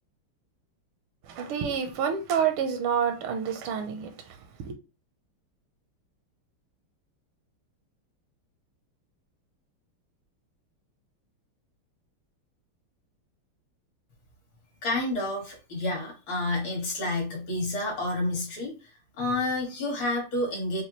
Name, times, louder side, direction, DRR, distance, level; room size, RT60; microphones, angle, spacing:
voice 1, 1.3-4.1 4.6-4.7, right 7 dB, 80° right, 1.6 m, -28 dB
voice 2, 14.8-18.8 19.2-20.8, left 2 dB, 70° left, 2.5 m, -29 dB
5.7 x 2.3 x 3.1 m
omnidirectional pair, 2.4 m